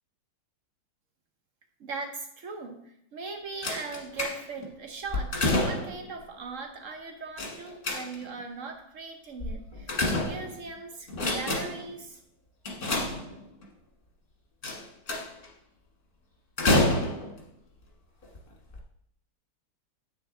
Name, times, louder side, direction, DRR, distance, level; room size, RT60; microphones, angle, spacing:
voice 1, 1.8-12.2, right 4 dB, 65° right, 4 dB, 0.8 m, -39 dB
sound 1, 3.6-4.7 5.1-6.1 7.4-8.4 9.4-10.7 11.1-11.9 12.6-13.6 14.6-15.5 16.6-17.4 18.2-18.4 18.7-18.8, left 2 dB, 30° left, 1.3 m, -28 dB
8.1 x 6.5 x 3.7 m, 0.73 s
omnidirectional pair, 2.2 m